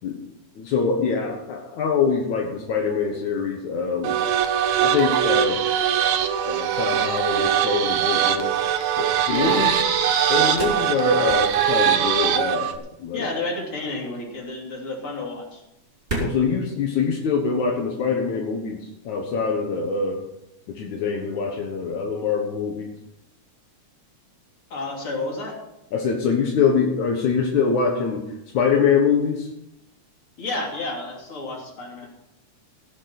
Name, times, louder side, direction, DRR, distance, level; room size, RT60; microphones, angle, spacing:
voice 1, 0.6-4.1 4.8-5.8 6.5-8.5 9.0-9.7 10.3-13.3 16.2-20.2 20.7-22.9 25.9-29.5, left 5 dB, 75° left, 1 dB, 2.8 m, -24 dB
sound 1, 4.0-12.8, right 9 dB, 70° right, 2.3 m, -21 dB
sound 2, 6.7-17.9, right 2 dB, 15° right, 4.7 m, -39 dB
voice 2, 9.3-9.6 13.1-15.6 24.7-25.6 30.4-32.1, left 2 dB, 45° left, -1 dB, 3.9 m, -31 dB
17.0 x 7.4 x 6.0 m, 0.83 s
omnidirectional pair, 3.4 m